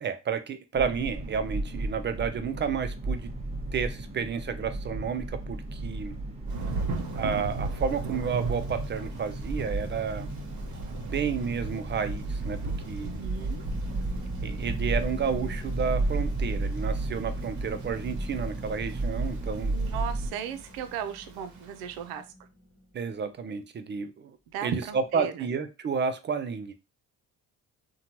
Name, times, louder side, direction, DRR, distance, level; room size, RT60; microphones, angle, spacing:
voice 1, 0.0-3.3 3.7-6.2 7.2-10.3 11.1-12.6 12.9-13.2 14.4-19.7 22.9-24.4 24.6-26.7, right 6 dB, 35° right, 0.4 m, -31 dB
sound 1, 0.7-20.3, right 2 dB, 15° right, 0.8 m, -33 dB
Thunder / Rain, 6.5-22.1, right 3 dB, 55° right, 0.9 m, -39 dB
sound 2, 10.1-23.3, left 1 dB, 35° left, 0.9 m, -47 dB
voice 2, 13.0-13.6 19.7-22.2 24.5-25.5, right 8 dB, 90° right, 0.5 m, -36 dB
2.8 x 2.2 x 2.9 m
supercardioid pair, 75°, 35 cm